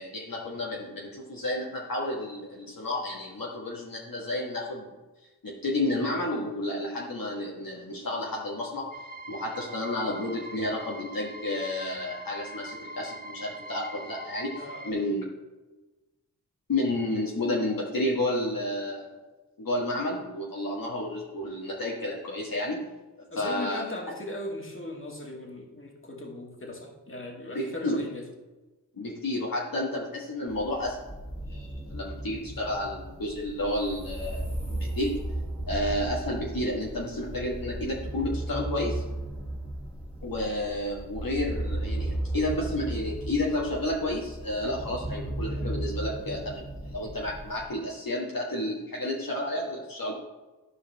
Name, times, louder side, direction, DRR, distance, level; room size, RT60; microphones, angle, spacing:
voice 1, 0.0-4.9 5.4-8.9 9.3-14.5 14.8-15.2 16.7-19.1 19.6-22.8 23.3-23.8 27.5-28.0 29.0-31.0 31.5-35.1 35.7-39.0 40.2-50.2, left 1 dB, 60° left, -3 dB, 1.5 m, -31 dB
sound 1, 8.9-14.9, right 1 dB, 25° right, 0.8 m, -42 dB
voice 2, 14.6-15.2 23.3-28.3, left 1 dB, 30° left, 0 dB, 2.0 m, -38 dB
sound 2, 30.5-47.6, right 1 dB, 5° right, 2.2 m, -35 dB
12.5 x 4.9 x 3.4 m, 1.2 s
cardioid pair, 40°, 39 cm